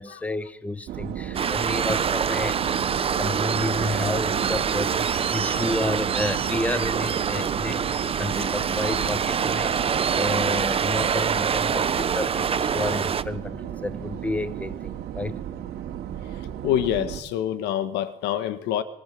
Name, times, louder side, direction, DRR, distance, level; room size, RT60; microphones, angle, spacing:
voice 1, 0.0-15.4, left 2 dB, 10° left, 1.3 m, -31 dB
sound 1, 0.9-17.2, right 10 dB, 70° right, 3.0 m, -34 dB
Waves surf, 1.3-13.2, right 7 dB, 35° right, 1.0 m, -25 dB
voice 2, 16.6-18.8, left 11 dB, 85° left, 1.9 m, -26 dB
25.5 x 25.0 x 7.1 m
cardioid pair, 110°, 17 cm